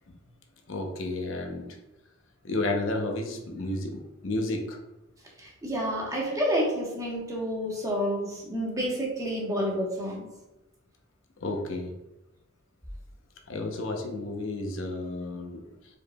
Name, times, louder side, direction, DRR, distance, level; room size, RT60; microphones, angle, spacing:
voice 1, 0.7-1.7 2.4-4.8 11.4-11.9 13.5-15.6, left 2 dB, 65° left, 3 dB, 0.7 m, -31 dB
voice 2, 5.4-10.3, equal, 15° right, -2 dB, 1.1 m, -29 dB
4.9 x 4.8 x 2.2 m, 0.95 s
head